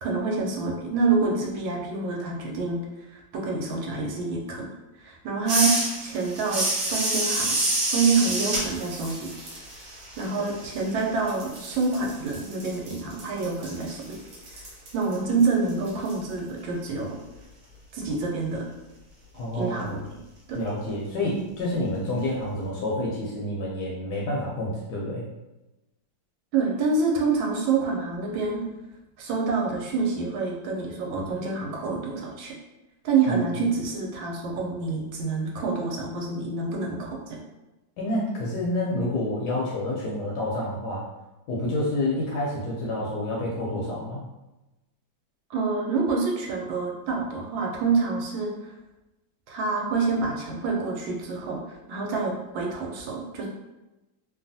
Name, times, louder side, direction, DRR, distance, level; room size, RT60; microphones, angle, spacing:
voice 1, 0.0-2.8 3.1-4.7 5.0-5.7 6.0-7.6 7.9-9.3 10.2-14.2 14.5-14.6 14.9-17.2 17.9-18.7 19.5-20.2 20.5-20.6 26.5-28.6 29.2-32.5 33.0-37.4 45.5-48.7 49.5-53.5, right 4 dB, 80° right, -1 dB, 1.3 m, -27 dB
sound 1, 5.5-11.0 11.3-16.1, right 2 dB, 65° right, 1.2 m, -29 dB
voice 2, 19.3-20.0 20.5-25.2 33.2-33.4 38.0-41.0 41.5-44.2, left 1 dB, 70° left, -4 dB, 1.0 m, -28 dB
3.1 x 2.3 x 2.6 m, 1.0 s
omnidirectional pair, 2.2 m